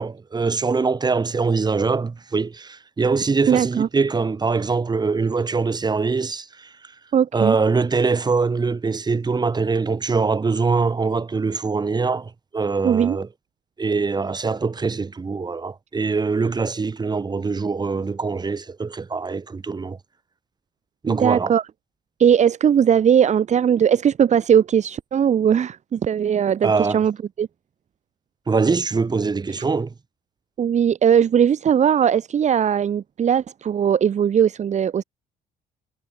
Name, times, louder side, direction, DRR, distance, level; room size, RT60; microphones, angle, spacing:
voice 1, 0.0-6.7 7.3-13.3 13.8-20.0 21.0-21.5 26.6-27.0 28.5-29.9, right 4 dB, 25° right, 7.2 m, -23 dB
voice 2, 3.5-3.9 7.1-7.5 12.8-13.2 21.1-21.6 22.2-27.1 27.4-27.5 30.6-35.0, right 8 dB, 45° right, 2.0 m, -19 dB
cardioid pair, 110°, 17 cm